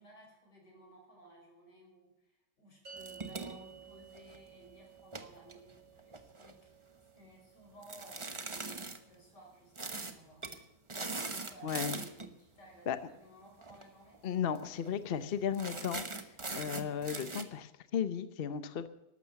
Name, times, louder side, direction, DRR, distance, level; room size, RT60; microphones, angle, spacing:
voice 1, 0.0-6.9 7.1-10.6 11.3-14.2, right 1 dB, 90° left, 0 dB, 6.0 m, -58 dB
sound 1, 2.8-9.4, right 7 dB, 55° right, 3.1 m, -56 dB
sound 2, 3.0-4.5 5.0-6.5 7.8-9.0 9.8-10.1 10.4-10.6 10.9-12.3 13.6-13.8 14.1-14.2 14.6-14.9 15.5-17.4, right 3 dB, 20° right, 0.9 m, -41 dB
voice 2, 11.6-12.0 12.9-13.0 14.2-16.0 16.6-18.9, left 8 dB, 45° left, 12 dB, 0.9 m, -35 dB
12.5 x 12.5 x 7.1 m, 0.91 s
omnidirectional pair, 1.8 m